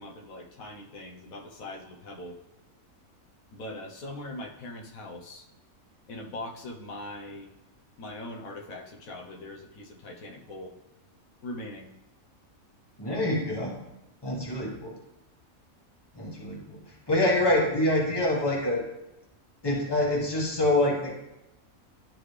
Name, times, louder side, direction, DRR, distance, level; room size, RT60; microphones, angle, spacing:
voice 1, 0.0-2.4 3.5-5.5 6.1-7.5 8.0-10.8 11.4-11.9, left 1 dB, 90° left, 1 dB, 1.3 m, -41 dB
voice 2, 13.0-13.8 14.2-15.0 16.1-16.8 17.1-18.8 19.6-21.1, left 1 dB, 20° left, -2 dB, 1.4 m, -26 dB
11.0 x 3.8 x 3.2 m, 0.94 s
omnidirectional pair, 1.4 m